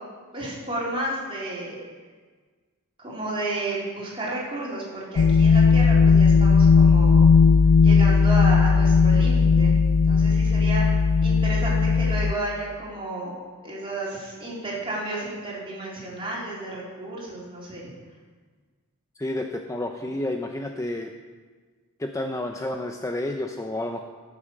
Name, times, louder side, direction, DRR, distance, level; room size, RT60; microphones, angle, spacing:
voice 1, 0.3-1.8 3.0-7.3 7.8-9.8 10.1-13.3 13.6-17.9, right 2 dB, 25° right, -6 dB, 3.9 m, -32 dB
sound 1, 5.2-12.3, left 5 dB, 70° left, 0.4 m, -17 dB
voice 2, 19.2-21.1 22.0-24.0, left 1 dB, 15° left, 4 dB, 0.6 m, -30 dB
16.0 x 7.1 x 6.6 m, 1.4 s
head